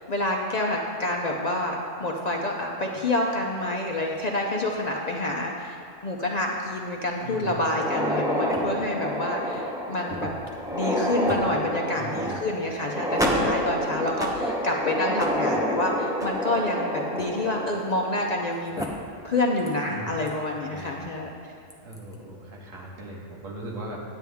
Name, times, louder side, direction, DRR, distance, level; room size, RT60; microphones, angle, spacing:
voice 1, 0.1-10.3 10.7-18.8 19.2-21.3, left 2 dB, 50° left, 0 dB, 0.5 m, -28 dB
voice 2, 7.2-7.6 11.9-12.4 19.9-20.2 20.7-21.1 21.4-24.0, right 2 dB, 85° right, -2 dB, 1.7 m, -39 dB
sound 1, 7.6-18.4 18.8-18.9 19.7-19.8 20.3-20.4 21.7-22.0, equal, 5° right, 0.6 m, -28 dB
9.1 x 9.1 x 3.5 m, 2.4 s
omnidirectional pair, 1.3 m